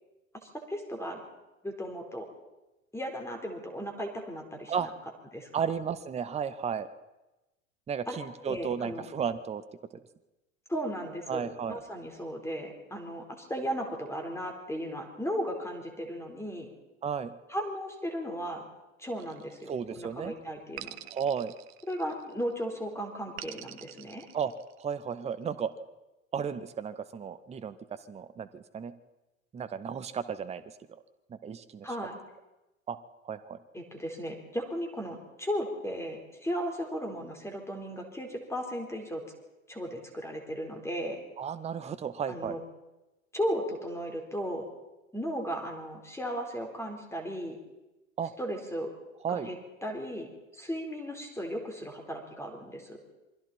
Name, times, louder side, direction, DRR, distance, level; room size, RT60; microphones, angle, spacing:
voice 1, 0.5-1.2 1.6-2.3 2.9-4.9 5.3-5.5 8.1-8.2 8.4-9.1 10.7-16.7 17.5-18.7 19.0-21.0 21.9-24.3 31.8-32.2 33.7-39.2 39.7-41.2 42.3-42.6 43.3-44.6 45.1-47.6 48.4-48.9 49.3-49.6 49.8-50.3 50.5-53.0, equal, 5° left, 3 dB, 4.2 m, -36 dB
voice 2, 5.5-6.9 7.9-9.6 11.3-11.8 17.0-17.3 19.7-20.3 21.1-21.5 24.3-24.5 24.8-25.7 26.3-28.9 29.5-30.6 30.9-31.0 31.3-31.9 32.9-33.0 33.2-33.6 41.4-42.6 48.2-48.3 49.2-49.5, right 7 dB, 15° right, 13 dB, 0.9 m, -33 dB
sound 1, 19.2-20.0 20.8-22.4 23.4-25.0, right 14 dB, 50° right, 1.0 m, -46 dB
27.5 x 22.5 x 4.4 m, 1.0 s
figure-of-eight pair, 75°, 41 cm